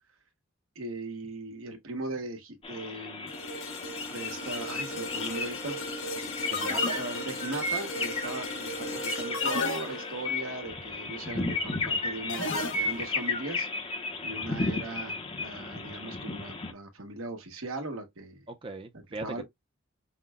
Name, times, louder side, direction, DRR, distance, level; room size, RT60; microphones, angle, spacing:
voice 1, 0.7-3.3 4.1-5.8 7.0-13.7 14.2-18.4 19.2-19.4, right 2 dB, 90° right, 1.4 m, -38 dB
sound 1, 2.6-16.7, left 3 dB, 25° left, 0.8 m, -34 dB
sound 2, 3.3-11.6 12.1-12.3, left 1 dB, 85° left, 2.2 m, -38 dB
sound 3, 4.5-4.8 6.5-7.6 9.3-10.4 12.3-13.2, left 3 dB, 70° left, 1.2 m, -34 dB
voice 2, 6.5-7.0 18.5-19.4, right 2 dB, 25° right, 0.6 m, -39 dB
5.6 x 2.2 x 3.5 m
head